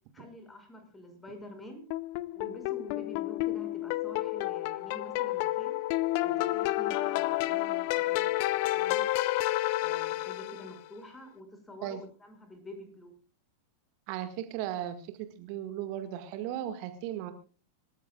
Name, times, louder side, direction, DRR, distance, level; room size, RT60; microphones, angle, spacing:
voice 1, 0.1-1.8 2.3-5.8 6.2-9.0 9.8-13.1, left 1 dB, 10° left, 5 dB, 6.0 m, -47 dB
sound 1, 1.9-10.8, left 17 dB, 45° left, 0.7 m, -30 dB
voice 2, 14.1-17.3, right 11 dB, 45° right, 8 dB, 1.8 m, -36 dB
26.5 x 14.0 x 2.4 m, 0.37 s
figure-of-eight pair, 90°, 0 cm